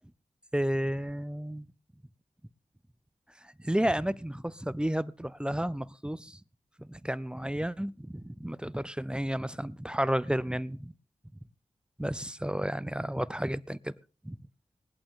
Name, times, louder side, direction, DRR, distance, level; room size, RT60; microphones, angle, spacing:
voice 1, 0.5-1.7 3.6-6.4 6.8-10.9 12.0-13.9 14.2-14.4, equal, 5° right, 0.6 m, -32 dB
19.5 x 11.5 x 3.8 m
wide cardioid pair, 65°, 13 cm